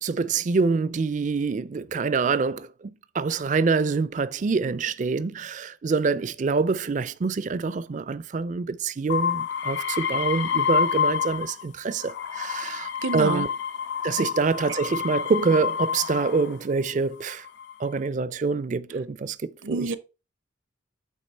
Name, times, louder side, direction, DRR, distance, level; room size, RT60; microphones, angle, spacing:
voice 1, 0.0-13.5 14.0-17.5 17.8-19.9, right 4 dB, 40° right, 0.4 m, -26 dB
sound 1, 9.1-11.6 12.0-16.5 17.3-17.9, left 7 dB, 70° left, 0.6 m, -28 dB
voice 2, 12.6-13.5 14.2-14.3 19.6-20.0, right 3 dB, 80° right, 0.7 m, -29 dB
8.4 x 3.5 x 4.4 m
head